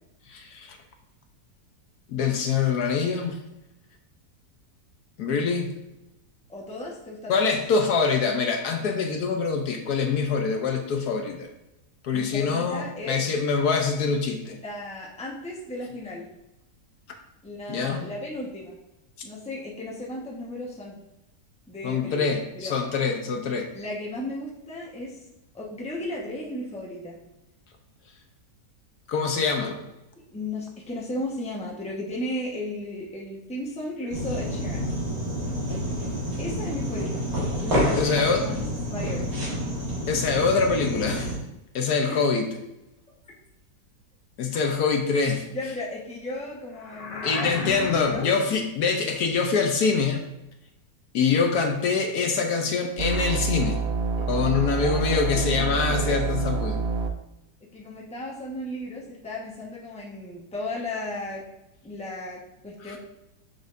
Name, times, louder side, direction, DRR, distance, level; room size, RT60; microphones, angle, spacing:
voice 1, 0.3-0.8 2.1-3.4 5.2-5.8 7.3-11.5 12.0-14.6 17.7-18.1 21.8-23.7 29.1-29.7 38.0-38.4 40.1-41.3 41.7-42.5 44.4-45.5 47.2-50.2 51.1-53.8 54.3-56.8 62.9-63.0, left 5 dB, 70° left, 4 dB, 1.2 m, -24 dB
voice 2, 6.5-7.6 12.1-13.2 14.5-16.3 17.4-18.8 19.2-21.0 21.7-22.8 23.7-25.2 25.5-27.2 29.6-29.7 30.3-34.9 36.4-37.2 37.6-38.6 38.9-39.2 42.1-42.2 45.0-45.1 45.5-48.3 54.2-56.2 57.7-61.4 61.8-63.0, left 1 dB, 5° left, -3 dB, 0.9 m, -35 dB
sound 1, 34.1-41.4, equal, 55° right, 2.2 m, -28 dB
sound 2, 46.7-48.4, left 3 dB, 85° left, 1.7 m, -35 dB
sound 3, 53.0-57.1, right 4 dB, 75° right, 0.5 m, -27 dB
6.7 x 6.2 x 2.6 m, 0.90 s
omnidirectional pair, 1.8 m